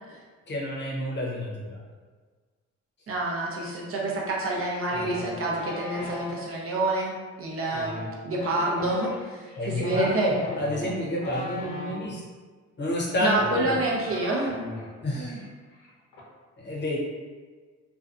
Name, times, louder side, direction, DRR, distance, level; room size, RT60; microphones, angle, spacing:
voice 1, 0.5-1.8 9.6-12.2 12.8-13.8 15.0-15.5 16.6-17.0, left 1 dB, 35° left, -4 dB, 0.7 m, -29 dB
voice 2, 3.1-8.0 8.2-10.3 13.2-14.6, right 2 dB, 50° right, -3 dB, 0.6 m, -28 dB
sound 1, 4.9-6.4 7.6-12.0 12.9-13.0 13.3-14.9 15.2-15.5 15.7-16.2, left 1 dB, 75° left, 0.7 m, -38 dB
2.5 x 2.2 x 2.4 m, 1.4 s
cardioid pair, 90°, 30 cm